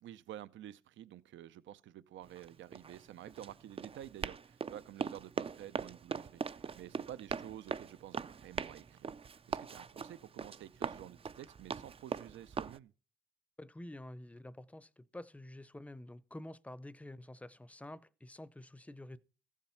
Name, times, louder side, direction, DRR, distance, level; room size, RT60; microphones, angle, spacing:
voice 1, 0.0-12.9, right 12 dB, 70° right, 0.6 m, -50 dB
Run, 2.2-12.8, right 6 dB, 30° right, 0.5 m, -41 dB
voice 2, 13.6-19.2, left 1 dB, 5° left, 0.7 m, -49 dB
14.5 x 7.4 x 5.7 m
cardioid pair, 90°, 20 cm